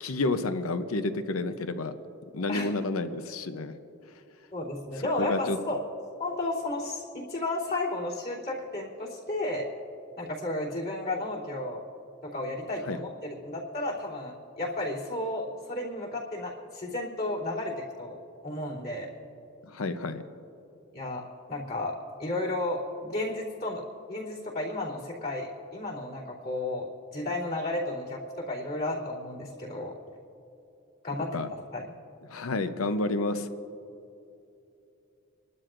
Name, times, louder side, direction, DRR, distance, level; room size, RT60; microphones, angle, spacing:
voice 1, 0.0-1.9 2.3-3.7 5.2-5.6 12.9-13.0 19.6-20.2 31.3-31.5 32.3-33.5, left 2 dB, 85° left, 10 dB, 0.7 m, -30 dB
voice 2, 4.5-5.8 6.2-9.7 10.2-11.8 12.2-18.2 18.4-19.1 20.9-23.8 24.1-29.9 31.0-31.4 31.7-31.8, left 2 dB, 50° left, -6 dB, 3.2 m, -33 dB
28.0 x 12.0 x 2.6 m, 2.8 s
head